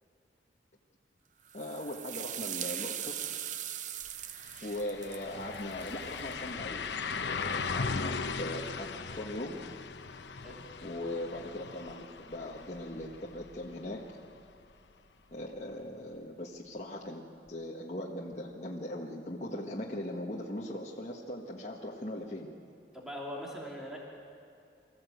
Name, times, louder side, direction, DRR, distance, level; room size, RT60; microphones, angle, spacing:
voice 1, 1.5-3.2 4.6-6.8 7.2-8.9 9.2-9.7 10.8-14.1 15.3-22.5, left 1 dB, 40° left, -3 dB, 1.4 m, -39 dB
sound 1, 1.5-6.3, right 10 dB, 45° right, 0.6 m, -40 dB
sound 2, 4.0-4.1 4.4-14.2 14.6-14.7 17.5-17.6, left 5 dB, 80° left, 0.9 m, -38 dB
voice 2, 22.9-24.0, equal, 5° right, -3 dB, 3.0 m, -42 dB
25.0 x 15.0 x 8.0 m, 2.6 s
head